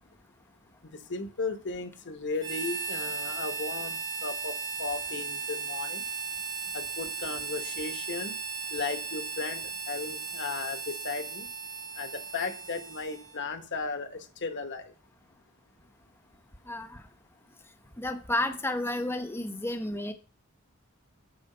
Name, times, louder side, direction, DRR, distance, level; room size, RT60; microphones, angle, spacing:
voice 1, 0.9-6.0 6.7-8.4 8.7-11.5 12.0-14.9, left 4 dB, 55° left, 8 dB, 1.1 m, -36 dB
Harmonica, 2.4-13.5, right 5 dB, 55° right, 2.6 m, -36 dB
voice 2, 16.7-17.0 18.0-20.1, left 1 dB, 10° left, 7 dB, 0.8 m, -31 dB
8.7 x 4.8 x 5.4 m, 0.39 s
head